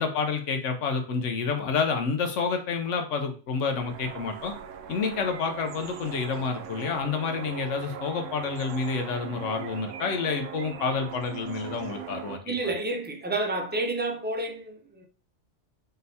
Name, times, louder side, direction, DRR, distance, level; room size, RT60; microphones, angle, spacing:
voice 1, 0.0-4.5 4.9-12.6, left 5 dB, 85° left, 1.1 m, -29 dB
sound 1, 3.7-12.4, right 8 dB, 90° right, 0.9 m, -40 dB
voice 2, 12.5-15.0, right 2 dB, 15° right, 0.3 m, -30 dB
4.0 x 3.8 x 2.7 m
omnidirectional pair, 1.2 m